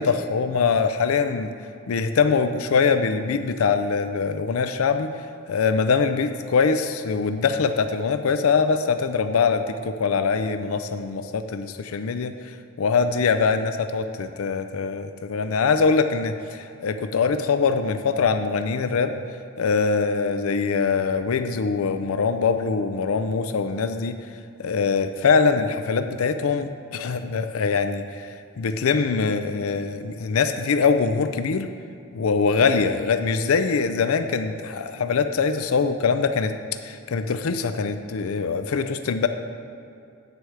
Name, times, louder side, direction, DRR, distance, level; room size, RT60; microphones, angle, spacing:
voice 1, 0.0-1.5 1.9-19.2 19.6-24.2 24.6-31.7 32.1-36.5 36.8-39.3, left 5 dB, 90° left, 9 dB, 0.5 m, -23 dB
9.8 x 4.8 x 7.8 m, 2.6 s
head